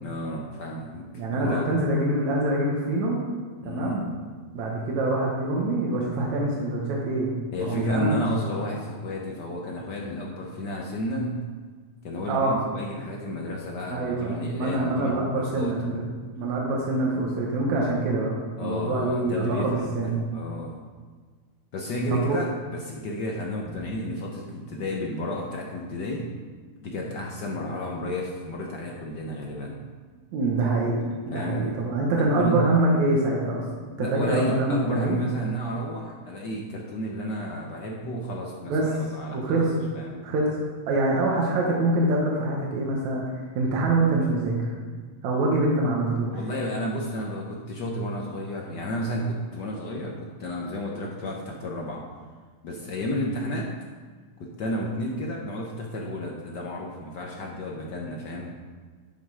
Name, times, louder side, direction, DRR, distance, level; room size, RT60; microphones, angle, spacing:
voice 1, 0.0-1.0 1.3-1.7 3.6-4.0 7.5-11.4 12.0-16.0 18.6-20.7 21.7-26.3 26.8-29.8 31.3-31.7 32.3-32.6 34.0-40.2 46.3-52.0 52.6-53.7 54.4-58.5, equal, 85° left, -1 dB, 0.9 m, -32 dB
voice 2, 1.1-3.2 3.6-4.0 4.5-8.2 12.3-12.6 13.9-20.3 22.1-22.4 30.3-33.7 34.0-35.2 38.7-39.0 39.3-39.7 40.2-40.6 40.9-43.2 43.6-44.5 45.2-46.3, right 2 dB, 75° right, -3 dB, 2.6 m, -25 dB
11.0 x 6.5 x 4.9 m, 1.5 s
omnidirectional pair, 3.3 m